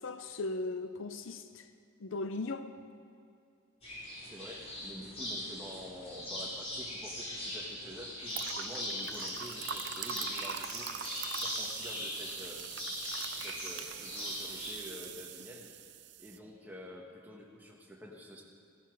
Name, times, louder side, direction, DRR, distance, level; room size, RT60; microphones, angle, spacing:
voice 1, 0.0-1.7 2.0-2.7, left 2 dB, 60° left, 0.5 m, -37 dB
sound 1, 3.8-14.7, left 1 dB, 30° left, 3.4 m, -40 dB
voice 2, 4.3-10.9 11.4-12.7 13.4-15.7 16.2-18.4, equal, 10° right, 1.4 m, -48 dB
sound 2, 8.3-16.4, right 9 dB, 55° right, 0.5 m, -43 dB
16.5 x 11.0 x 4.7 m
head